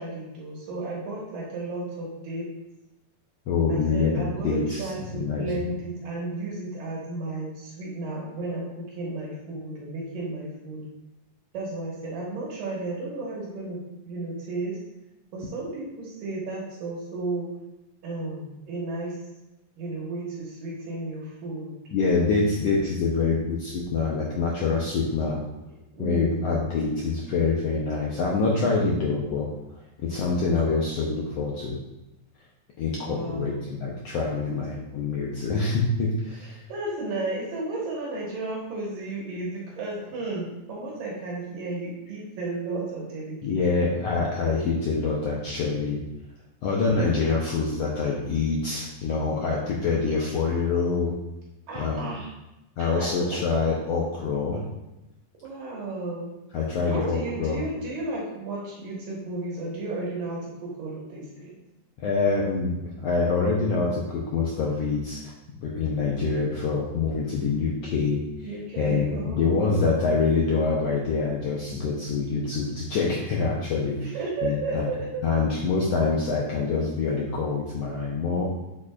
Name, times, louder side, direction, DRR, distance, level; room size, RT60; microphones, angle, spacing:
voice 1, 0.0-2.5 3.7-10.8 11.5-14.8 15.3-17.5 18.0-19.2 19.8-21.7 25.9-26.7 33.1-33.6 36.7-43.6 51.7-52.3 52.8-53.1 55.4-56.3 56.8-61.5 68.4-70.0 74.0-75.2, right 2 dB, 75° right, -4 dB, 3.1 m, -33 dB
voice 2, 3.5-5.7 21.9-25.4 26.0-29.5 30.0-31.8 32.8-36.6 43.4-46.0 46.6-51.1 51.7-52.1 52.8-54.6 56.5-57.6 62.0-65.3 65.6-68.2 68.8-74.0 74.4-74.9 75.2-78.5, left 4 dB, 75° left, -3 dB, 1.5 m, -25 dB
8.4 x 7.3 x 2.5 m, 0.96 s
omnidirectional pair, 4.0 m